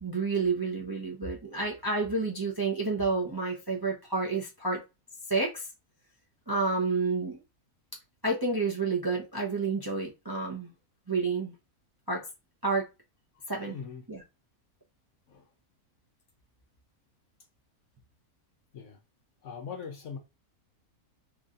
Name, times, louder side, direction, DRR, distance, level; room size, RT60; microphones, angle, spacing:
voice 1, 0.0-4.8 5.3-5.7 6.5-7.4 8.2-10.7 11.1-11.5 12.1-12.3 12.6-12.9 13.5-13.8 14.1-14.2, right 3 dB, 20° right, 0.6 m, -29 dB
voice 2, 13.6-14.0 15.3-15.5 18.7-19.0 19.4-20.2, left 6 dB, 65° left, 0.9 m, -41 dB
3.1 x 2.6 x 3.6 m
omnidirectional pair, 1.6 m